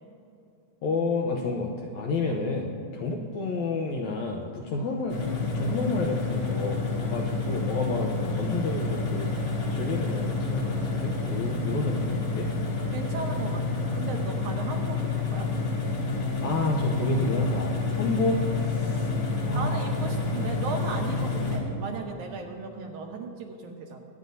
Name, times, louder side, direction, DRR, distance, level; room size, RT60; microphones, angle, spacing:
voice 1, 0.8-5.2 5.5-12.5 16.4-19.1 19.5-19.9, left 3 dB, 75° left, 0 dB, 1.7 m, -30 dB
sound 1, 5.1-21.6, left 3 dB, 55° left, 2.9 m, -29 dB
voice 2, 12.9-15.5 19.5-24.0, right 4 dB, 75° right, 2 dB, 2.0 m, -36 dB
23.5 x 9.4 x 2.7 m, 2.6 s
omnidirectional pair, 4.0 m